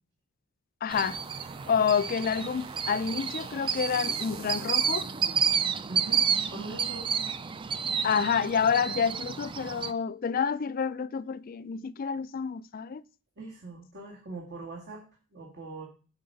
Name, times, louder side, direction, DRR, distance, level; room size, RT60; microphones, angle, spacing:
voice 1, 0.8-1.2 1.7-5.1 8.0-13.0, left 6 dB, 40° left, 0.4 m, -28 dB
sound 1, 0.9-9.9, right 7 dB, 25° right, 0.4 m, -30 dB
sound 2, 0.9-6.9, right 8 dB, 70° right, 0.8 m, -51 dB
voice 2, 5.9-6.2 6.5-7.1 13.4-15.0 15.3-15.9, right 3 dB, 55° right, 2.0 m, -41 dB
9.3 x 4.7 x 6.6 m
head